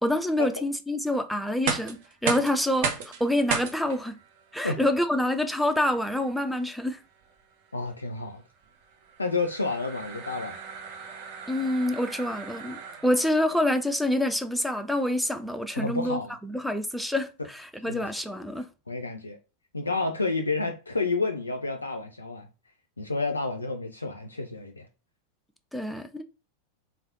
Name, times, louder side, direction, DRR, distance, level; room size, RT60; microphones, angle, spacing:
voice 1, 0.0-4.1 4.5-7.0 11.5-18.7 25.7-26.2, left 1 dB, ahead, 0.4 m, -27 dB
sound 1, 1.5-13.4, right 5 dB, 50° right, 0.7 m, -36 dB
voice 2, 7.7-8.4 9.2-10.6 15.8-16.3 17.9-18.1 18.9-19.4 19.7-22.5 23.0-24.9, left 3 dB, 80° left, 0.3 m, -30 dB
3.3 x 2.6 x 2.5 m
figure-of-eight pair, 90°, 0 cm